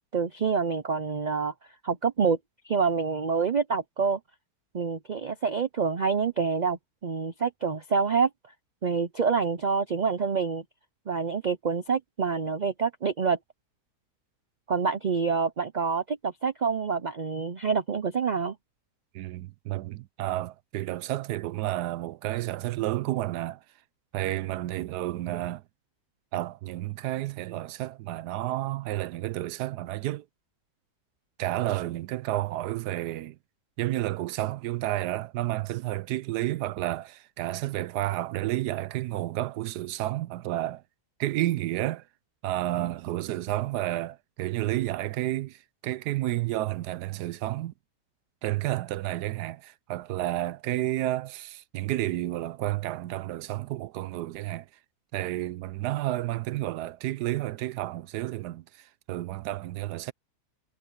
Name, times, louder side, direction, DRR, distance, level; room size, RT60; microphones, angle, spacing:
voice 1, 0.1-1.5 1.8-2.4 2.6-4.2 4.7-8.3 8.8-10.6 11.1-13.4 14.7-18.5, right 5 dB, 55° right, 0.5 m, -27 dB
voice 2, 19.1-23.6 24.1-25.6 26.3-30.2 31.4-33.4 33.8-40.8 41.2-42.0 42.4-47.7 48.4-54.7 55.1-60.1, right 15 dB, 90° right, 1.2 m, -31 dB
omnidirectional pair, 1.7 m